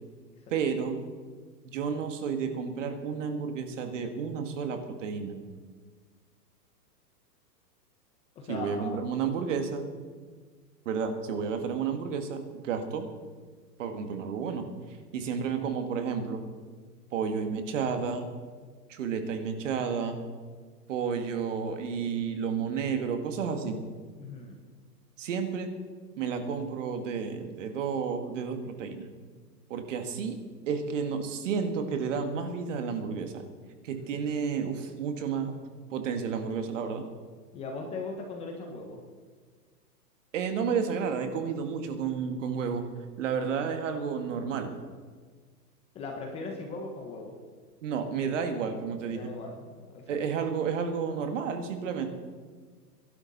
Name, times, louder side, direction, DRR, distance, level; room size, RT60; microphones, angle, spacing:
voice 1, 0.5-1.0 1.6-5.4 8.5-9.9 10.9-13.1 13.8-14.6 15.1-16.4 17.1-18.3 18.9-20.2 20.9-23.8 25.2-25.7 26.2-29.1 29.7-30.4 30.7-33.4 33.8-35.5 35.9-37.1 40.3-42.9 43.2-44.7 47.8-49.3 50.1-52.1, right 6 dB, 50° right, 6 dB, 1.9 m, -31 dB
voice 2, 8.3-9.0 24.2-24.6 33.9-34.1 37.5-39.0 45.9-47.3 49.1-50.2, left 3 dB, 10° left, 2 dB, 1.0 m, -39 dB
22.5 x 11.5 x 4.2 m, 1.5 s
hypercardioid pair, 160°, 49 cm